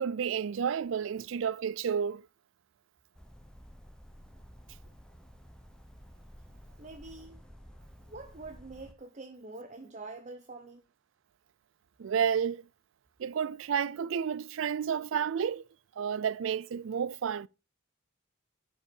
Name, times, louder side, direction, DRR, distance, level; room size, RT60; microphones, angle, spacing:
voice 1, 0.0-2.2 12.0-12.6 13.2-15.6 16.0-17.5, right 7 dB, 75° right, 0.4 m, -31 dB
sound 1, 3.1-8.9, equal, 5° left, 1.0 m, -52 dB
voice 2, 6.8-7.4 8.0-10.8, right 3 dB, 35° right, 0.9 m, -45 dB
11.0 x 5.4 x 5.3 m
head